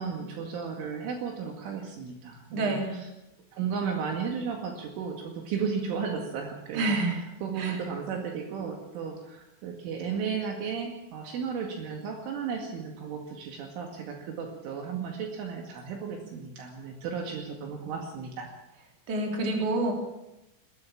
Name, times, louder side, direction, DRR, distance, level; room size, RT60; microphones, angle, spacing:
voice 1, 0.0-3.1 3.5-7.0 7.4-18.5, right 6 dB, 70° right, 3 dB, 4.5 m, -34 dB
voice 2, 2.5-3.0 6.7-7.2 7.6-7.8 19.1-19.9, right 2 dB, 40° right, 2 dB, 4.6 m, -27 dB
20.5 x 17.5 x 7.5 m, 0.91 s
omnidirectional pair, 5.9 m